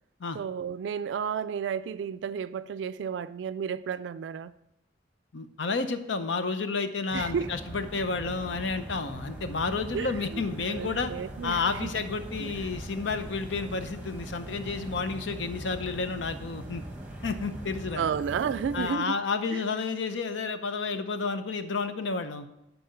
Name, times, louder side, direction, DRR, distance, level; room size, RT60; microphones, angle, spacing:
voice 1, 0.3-4.5 7.1-7.5 9.9-10.4 10.7-11.9 12.4-12.5 18.0-19.1 19.5-19.6, right 7 dB, 75° right, 0.3 m, -32 dB
voice 2, 5.3-11.1 11.4-16.8 17.2-18.1 18.7-22.5, left 4 dB, 85° left, 0.7 m, -31 dB
sound 1, 7.1-18.9, right 1 dB, 10° right, 1.3 m, -40 dB
10.0 x 4.2 x 5.6 m
head